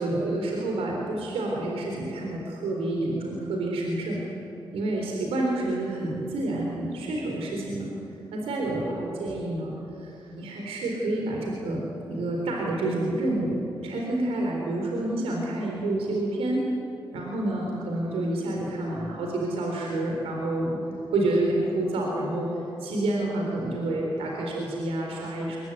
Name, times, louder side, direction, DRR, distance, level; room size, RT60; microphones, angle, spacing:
voice 1, 0.0-4.2 4.7-7.9 8.3-16.6 17.1-20.8 21.1-22.5 22.8-25.6, right 2 dB, 90° right, -1 dB, 4.0 m, -28 dB
22.5 x 22.0 x 9.4 m, 2.8 s
supercardioid pair, 45°, 10 cm